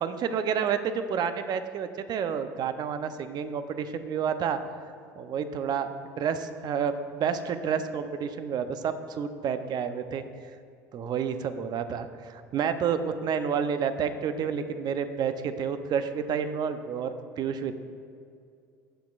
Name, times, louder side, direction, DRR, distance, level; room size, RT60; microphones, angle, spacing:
voice 1, 0.0-4.6 5.2-10.2 10.9-17.7, right 7 dB, 50° right, 10 dB, 0.6 m, -30 dB
16.0 x 6.1 x 2.5 m, 2.3 s
hypercardioid pair, 80°, 9 cm